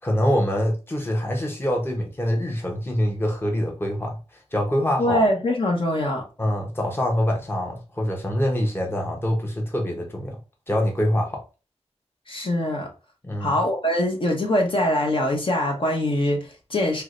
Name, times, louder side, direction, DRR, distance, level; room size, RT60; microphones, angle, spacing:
voice 1, 0.0-5.3 6.4-10.4 10.7-11.4 13.2-13.6, equal, 20° left, 0.9 m, -25 dB
voice 2, 5.0-6.2 12.3-12.9 13.4-17.0, left 1 dB, 50° left, 0.9 m, -23 dB
4.6 x 2.2 x 2.5 m
wide cardioid pair, 70°, 11 cm